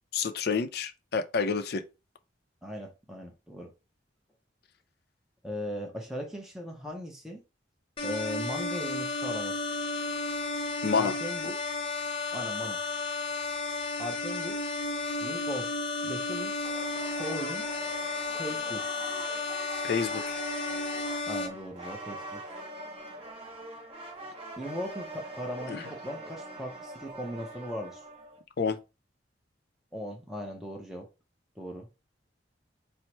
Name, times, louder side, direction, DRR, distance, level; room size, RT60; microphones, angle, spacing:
voice 1, 0.1-1.8 10.8-11.1 19.8-20.4 25.7-25.8 28.6-28.8, left 5 dB, 60° left, 0.5 m, -28 dB
voice 2, 2.6-3.7 5.4-7.4 8.0-9.7 10.9-11.5 12.3-12.8 14.0-14.6 15.2-15.8 16.0-16.6 17.1-17.7 18.4-18.9 21.3-22.4 24.6-28.0 29.9-31.1 31.6-31.9, equal, 5° right, 0.6 m, -38 dB
sound 1, 8.0-21.5, left 3 dB, 30° left, 0.8 m, -33 dB
sound 2, 16.6-28.4, right 2 dB, 35° right, 0.9 m, -43 dB
4.3 x 2.0 x 4.5 m
head